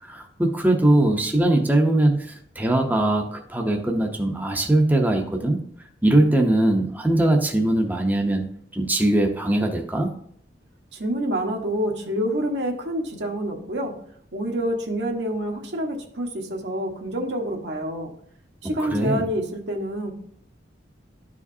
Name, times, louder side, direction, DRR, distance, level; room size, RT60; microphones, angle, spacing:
voice 1, 0.0-5.6 6.0-8.4 8.7-10.1 18.8-19.2, right 1 dB, 10° right, 2 dB, 0.7 m, -21 dB
voice 2, 10.9-13.9 14.3-18.1 18.6-20.1, equal, 70° right, 1 dB, 1.3 m, -27 dB
12.0 x 4.9 x 2.7 m, 0.67 s
head